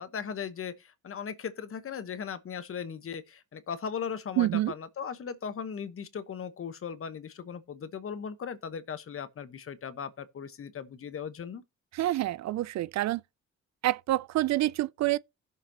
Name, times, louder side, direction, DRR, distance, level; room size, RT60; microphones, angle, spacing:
voice 1, 0.0-11.6, left 7 dB, 45° left, 1.2 m, -38 dB
voice 2, 4.4-4.7 11.9-13.2 13.8-15.2, right 15 dB, 65° right, 0.4 m, -27 dB
16.5 x 6.8 x 2.9 m
cardioid pair, 90°, 30 cm